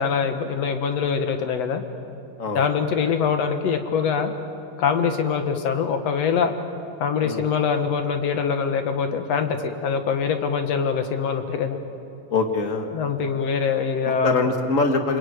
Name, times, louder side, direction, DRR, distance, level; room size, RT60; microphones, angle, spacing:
voice 1, 0.0-1.8 2.6-4.3 4.8-6.5 7.0-11.8 12.9-14.5, left 6 dB, 60° left, 7 dB, 2.2 m, -23 dB
voice 2, 12.3-12.9 14.2-15.2, left 3 dB, 30° left, 4 dB, 1.6 m, -23 dB
28.0 x 23.0 x 9.4 m, 2.6 s
omnidirectional pair, 3.8 m